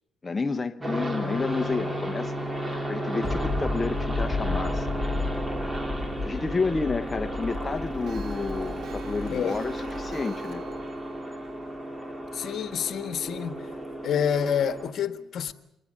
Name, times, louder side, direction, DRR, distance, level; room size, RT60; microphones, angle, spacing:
voice 1, 0.2-5.3 6.0-10.6, left 4 dB, 25° left, 0.9 m, -31 dB
sound 1, 0.8-14.9, right 1 dB, 15° right, 3.2 m, -33 dB
Clock, 3.1-4.0 4.5-4.6 4.9-5.0 5.3-5.4 5.7-5.8 6.2-6.3 6.6-6.7 7.0-7.1 7.4-13.3, right 5 dB, 75° right, 2.3 m, -49 dB
sound 2, 3.2-10.7, left 3 dB, 10° left, 7.0 m, -33 dB
voice 2, 9.3-9.6 12.3-13.7 14.0-15.5, left 8 dB, 65° left, 1.4 m, -28 dB
25.0 x 20.0 x 6.6 m
cardioid pair, 90°, 0 cm